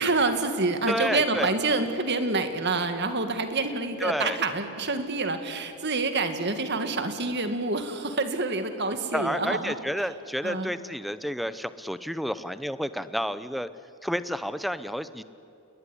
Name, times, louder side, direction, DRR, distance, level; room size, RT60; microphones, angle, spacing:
voice 1, 0.0-9.7 10.4-10.7, right 3 dB, 50° right, 8 dB, 2.1 m, -27 dB
voice 2, 0.9-1.5 4.0-4.4 9.1-13.7 14.0-15.2, equal, ahead, 13 dB, 0.7 m, -30 dB
28.5 x 21.0 x 9.9 m, 2.6 s
head